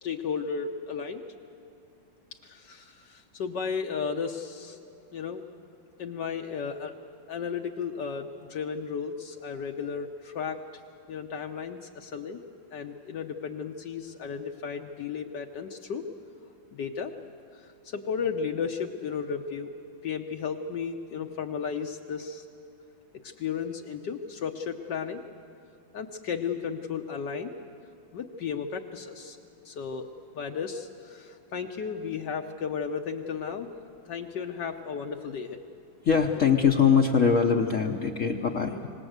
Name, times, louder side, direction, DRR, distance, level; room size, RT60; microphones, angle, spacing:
voice 1, 0.0-1.2 2.3-4.8 5.1-5.4 6.0-6.9 7.3-10.6 11.1-12.4 12.7-16.0 16.7-17.1 17.5-19.7 20.0-22.4 23.2-25.2 25.9-27.5 28.1-29.4 29.6-30.1 30.3-33.7 34.0-35.6, left 6 dB, 65° left, 3 dB, 1.4 m, -34 dB
voice 2, 36.0-38.9, left 6 dB, 50° left, 3 dB, 1.1 m, -22 dB
26.0 x 19.0 x 8.0 m, 2.4 s
omnidirectional pair, 2.1 m